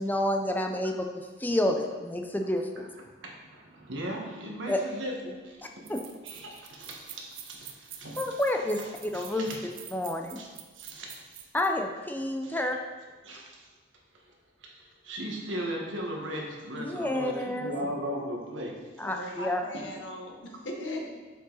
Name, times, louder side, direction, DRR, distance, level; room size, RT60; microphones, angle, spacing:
voice 1, 0.0-2.9 4.7-4.8 5.9-6.0 8.2-9.5 9.9-10.4 11.5-12.8 16.8-17.7 19.0-19.6, left 1 dB, 10° left, 3 dB, 0.5 m, -29 dB
voice 2, 3.2-5.9 6.2-8.2 9.1-9.5 10.4-10.5 10.7-11.4 12.4-12.6 13.2-13.7 14.2-14.3 14.6-18.8, equal, 85° right, -1 dB, 1.5 m, -37 dB
sound 1, 5.3-5.4 5.9-11.7, right 10 dB, 50° right, 0.6 m, -46 dB
voice 3, 19.0-21.1, left 1 dB, 75° left, 1 dB, 1.2 m, -38 dB
7.6 x 5.1 x 4.1 m, 1.3 s
head